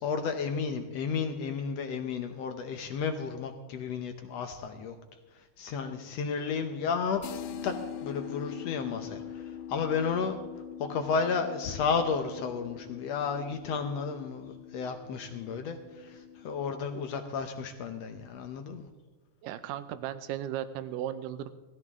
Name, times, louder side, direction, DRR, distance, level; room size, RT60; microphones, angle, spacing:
voice 1, 0.0-5.0 5.3-7.2 7.6-7.7 8.0-10.4 10.8-18.9, left 5 dB, 70° left, 6 dB, 1.6 m, -32 dB
sound 1, 7.2-16.8, left 9 dB, 85° left, 2.6 m, -43 dB
voice 2, 19.4-21.5, right 11 dB, 80° right, 11 dB, 2.3 m, -36 dB
18.0 x 14.5 x 3.6 m, 1.2 s
omnidirectional pair, 3.9 m